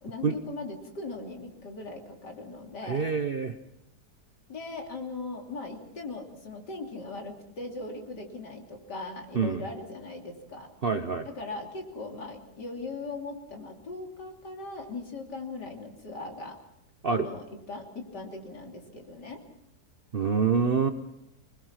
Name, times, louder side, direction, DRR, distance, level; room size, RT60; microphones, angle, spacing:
voice 1, 0.0-3.1 4.5-10.7 11.4-16.6 17.0-19.4, left 3 dB, 90° left, 2 dB, 3.6 m, -39 dB
voice 2, 2.8-3.6 9.3-9.6 10.8-11.3 17.0-17.3 20.1-20.9, right 5 dB, 40° right, 7 dB, 1.0 m, -26 dB
26.0 x 20.5 x 5.9 m, 0.83 s
omnidirectional pair, 1.8 m